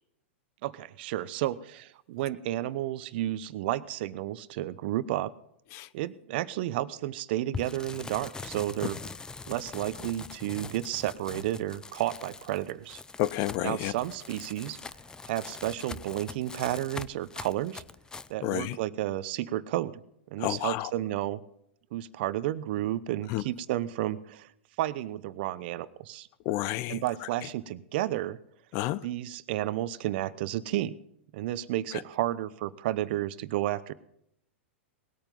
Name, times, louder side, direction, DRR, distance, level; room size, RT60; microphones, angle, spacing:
voice 1, 0.6-5.3 5.9-9.0 9.5-13.0 13.6-14.8 15.3-17.8 18.3-20.0 20.3-21.4 21.9-24.5 24.8-26.3 26.9-28.4 29.0-30.9 31.3-33.9, right 14 dB, 55° right, 0.9 m, -32 dB
sound 1, 7.5-18.3, left 4 dB, 10° left, 0.6 m, -43 dB
voice 2, 13.2-13.9 18.4-18.8 20.4-20.9 23.3-23.4 26.4-27.0 28.7-29.1 31.9-32.0, left 15 dB, 45° left, 0.7 m, -30 dB
19.5 x 9.0 x 5.5 m
hypercardioid pair, 110°, 7 cm